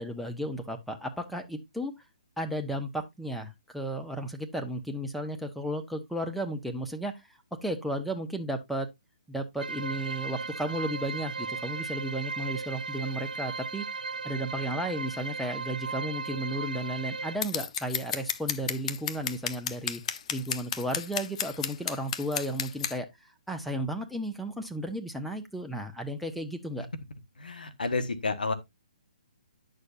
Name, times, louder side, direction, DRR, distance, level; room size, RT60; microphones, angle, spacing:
voice 1, 0.0-1.9 2.4-7.3 7.6-8.9 9.3-13.9 14.2-20.0 20.3-26.9, right 1 dB, ahead, 0.9 m, -34 dB
sound 1, 9.6-17.4, right 4 dB, 90° right, 0.5 m, -36 dB
Scissors, 17.4-22.9, left 8 dB, 50° left, 0.8 m, -32 dB
voice 2, 27.4-28.5, left 3 dB, 90° left, 1.4 m, -30 dB
9.7 x 6.5 x 2.6 m
hypercardioid pair, 140°, 5 cm